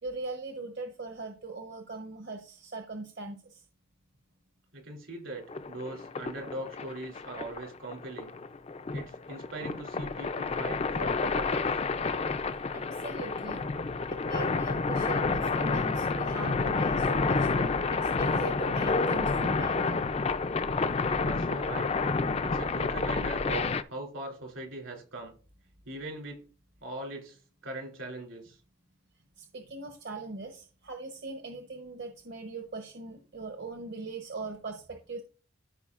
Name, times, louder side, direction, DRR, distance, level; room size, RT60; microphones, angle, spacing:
voice 1, 0.0-3.6 12.7-13.7 14.1-20.0 29.4-35.2, right 3 dB, 55° right, 4 dB, 0.9 m, -40 dB
voice 2, 4.7-8.4 8.9-11.7 21.2-21.9 22.4-25.3 25.9-26.4 26.8-28.6, right 2 dB, 75° right, 1 dB, 3.0 m, -40 dB
sound 1, 5.5-23.8, left 4 dB, 30° left, 0.4 m, -29 dB
13.5 x 5.2 x 2.5 m, 0.37 s
head